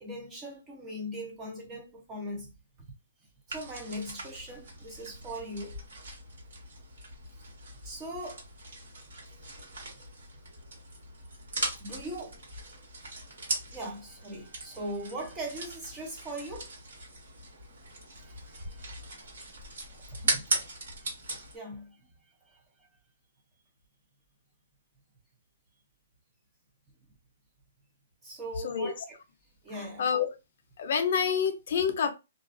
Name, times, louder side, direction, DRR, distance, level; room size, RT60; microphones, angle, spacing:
voice 1, 0.0-2.5 3.5-5.8 7.8-8.4 11.8-12.4 13.7-16.7 18.2-19.3 20.1-20.7 21.0-21.1 21.3-22.1 22.5-22.6 28.2-29.2 29.6-30.1, equal, 10° right, 0.5 m, -40 dB
sound 1, 3.5-21.6, right 2 dB, 70° right, 1.4 m, -39 dB
voice 2, 30.8-32.1, left 7 dB, 45° left, 0.5 m, -27 dB
2.4 x 2.3 x 2.4 m
hypercardioid pair, 175°, 0 cm